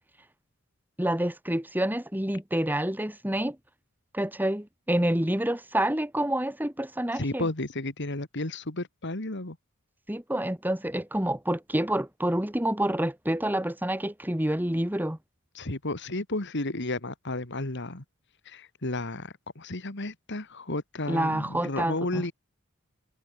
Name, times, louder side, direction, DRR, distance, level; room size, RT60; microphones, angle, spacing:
voice 1, 1.0-3.6 4.1-7.5 10.1-15.2 21.1-22.3, right 1 dB, 10° right, 2.1 m, -28 dB
voice 2, 7.1-9.6 15.5-18.0 18.5-22.3, left 2 dB, 55° left, 2.4 m, -32 dB
head